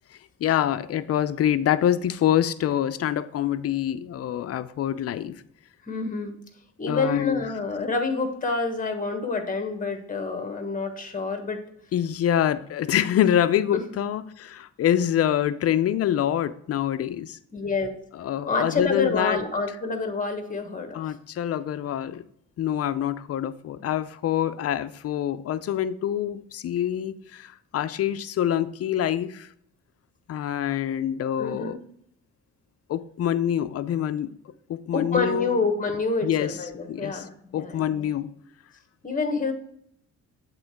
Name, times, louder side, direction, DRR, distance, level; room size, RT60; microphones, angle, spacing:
voice 1, 0.4-5.4 6.9-7.4 11.9-17.4 18.1-19.4 20.9-22.2 22.6-29.5 30.3-31.8 32.9-34.3 34.7-35.6 36.2-36.6 36.9-37.2 37.5-38.3, left 10 dB, 50° left, 0.5 m, -25 dB
voice 2, 5.9-6.3 6.8-11.6 17.5-17.9 18.5-21.0 31.4-31.8 34.9-38.1 39.0-39.5, left 4 dB, 25° left, 1.3 m, -27 dB
7.7 x 3.8 x 4.6 m
cardioid pair, 90°, 30 cm